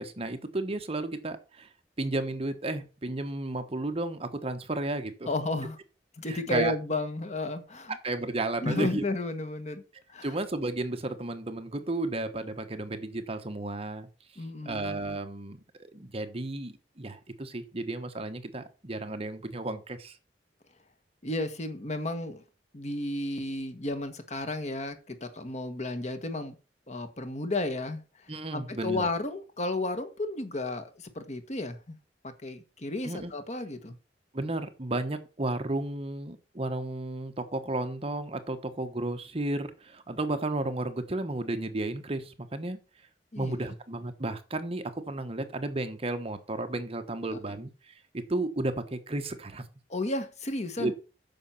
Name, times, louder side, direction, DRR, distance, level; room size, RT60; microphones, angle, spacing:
voice 1, 0.0-1.7 2.0-5.3 6.3-6.7 8.0-9.0 10.2-14.1 14.6-20.2 28.3-29.1 33.0-33.3 34.3-42.8 43.4-49.6 50.8-50.9, right 2 dB, 35° right, 1.2 m, -33 dB
voice 2, 5.3-5.8 6.2-7.9 8.6-9.8 10.1-10.3 14.4-14.9 21.2-22.4 22.7-26.5 26.9-28.0 28.5-32.0 32.2-33.9 43.3-43.7 49.9-50.9, left 2 dB, 40° left, 1.4 m, -33 dB
9.1 x 6.5 x 5.8 m
head